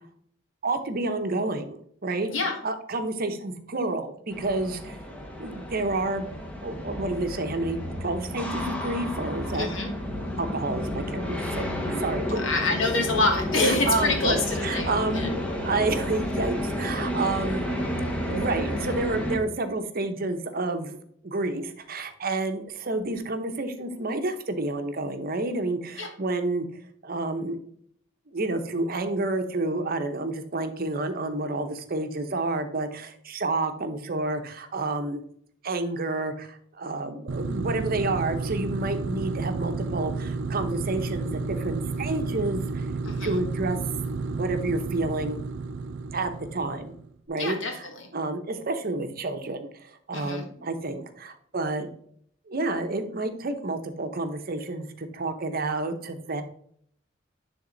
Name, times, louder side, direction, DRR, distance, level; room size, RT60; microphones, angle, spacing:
voice 1, 0.6-2.3 2.6-5.0 5.4-6.3 6.6-9.7 10.4-12.4 13.6-14.3 14.6-15.3 15.6-17.7 18.3-21.0 21.2-26.7 27.0-27.6 28.3-35.2 35.6-42.9 43.2-43.8 44.3-45.4 46.1-46.9 47.3-47.8 48.1-51.9 52.5-56.4, right 2 dB, 50° right, 8 dB, 0.8 m, -29 dB
sound 1, 4.3-19.4, equal, 5° left, 1.1 m, -31 dB
voice 2, 9.5-9.9 12.4-15.3 26.0-26.1 43.0-43.4 47.4-48.1 50.1-50.4, left 3 dB, 90° left, 2 dB, 1.7 m, -27 dB
sound 2, 37.3-47.1, right 3 dB, 70° right, 0.5 m, -31 dB
10.0 x 3.6 x 3.9 m, 0.64 s
head